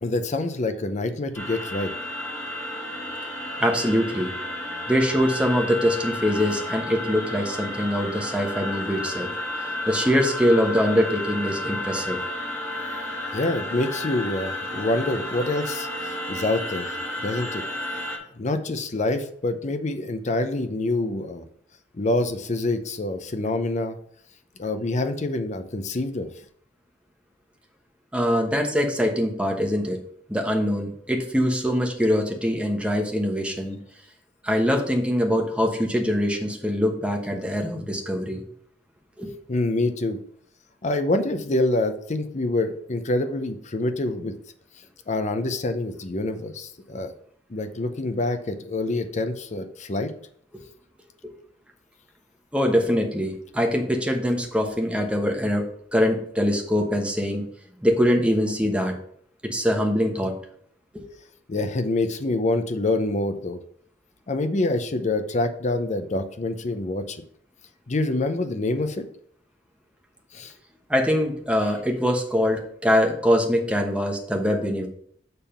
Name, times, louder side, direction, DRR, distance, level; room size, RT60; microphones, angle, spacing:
voice 1, 0.0-1.9 13.3-16.9 17.2-17.6 18.4-21.4 21.9-24.0 24.6-26.3 39.5-40.2 40.8-44.3 45.1-47.1 47.5-50.1 61.5-63.6 64.3-67.2 67.9-69.0 70.3-70.5, left 2 dB, 40° left, 8 dB, 0.6 m, -26 dB
sound 1, 1.3-18.2, left 1 dB, 15° left, 1.5 m, -32 dB
voice 2, 3.6-4.3 4.9-9.3 9.9-12.2 28.1-30.0 30.3-33.8 34.4-38.4 39.2-39.3 52.5-57.4 57.8-58.9 59.4-60.4 60.9-61.0 70.9-74.9, equal, 5° right, 2 dB, 1.0 m, -23 dB
6.8 x 3.6 x 5.6 m, 0.62 s
head